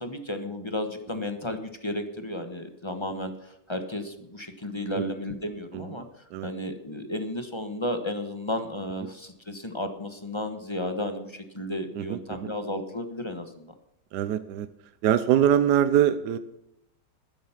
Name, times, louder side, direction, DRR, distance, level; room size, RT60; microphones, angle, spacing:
voice 1, 0.0-13.7, left 1 dB, 20° left, 8 dB, 1.0 m, -33 dB
voice 2, 11.9-12.5 14.1-14.7 15.0-16.4, right 10 dB, 70° right, 13 dB, 1.2 m, -23 dB
12.0 x 10.5 x 5.8 m, 0.81 s
omnidirectional pair, 1.9 m